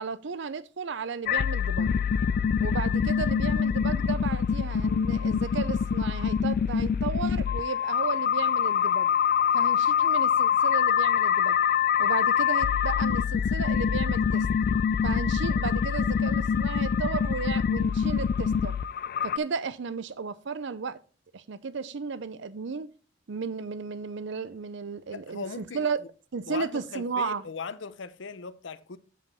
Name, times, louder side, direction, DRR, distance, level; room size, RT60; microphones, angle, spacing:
voice 1, 0.0-1.9 2.6-9.1 9.5-11.6 12.0-14.5 15.0-18.8 19.2-21.0 21.3-22.9 23.3-26.0 26.3-27.4, right 5 dB, 65° right, 0.6 m, -34 dB
sound 1, 1.3-19.4, left 7 dB, 50° left, 0.3 m, -25 dB
voice 2, 25.1-25.9 26.5-29.0, left 5 dB, 70° left, 0.7 m, -38 dB
7.9 x 5.0 x 5.5 m
head